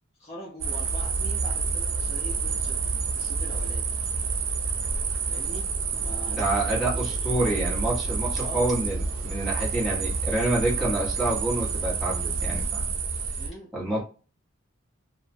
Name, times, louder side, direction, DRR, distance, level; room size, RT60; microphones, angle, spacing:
voice 1, 0.2-3.9 5.3-5.7 6.0-7.7 8.4-8.7 13.4-13.7, left 1 dB, 30° left, -4 dB, 0.5 m, -42 dB
sound 1, 0.6-13.5, right 4 dB, 90° right, 0.4 m, -28 dB
voice 2, 6.3-12.9 13.7-14.0, right 1 dB, ahead, -7 dB, 1.1 m, -28 dB
2.4 x 2.1 x 2.5 m, 0.35 s
head